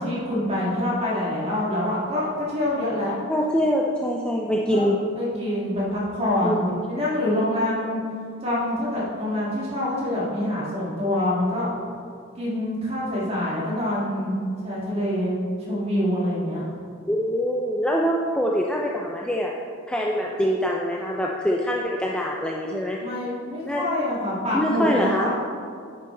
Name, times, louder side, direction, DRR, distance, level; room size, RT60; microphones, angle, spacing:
voice 1, 0.0-3.1 4.7-4.9 5.2-6.6 6.9-8.0 8.4-11.7 12.4-14.4 14.6-15.3 15.6-16.6 23.0-25.3, left 1 dB, 30° right, -6 dB, 2.1 m, -26 dB
voice 2, 3.3-5.0 6.4-6.8 17.1-19.5 19.9-23.0 23.7-23.8 24.5-25.3, equal, 5° left, -2 dB, 0.4 m, -24 dB
9.2 x 6.6 x 3.8 m, 2.3 s
head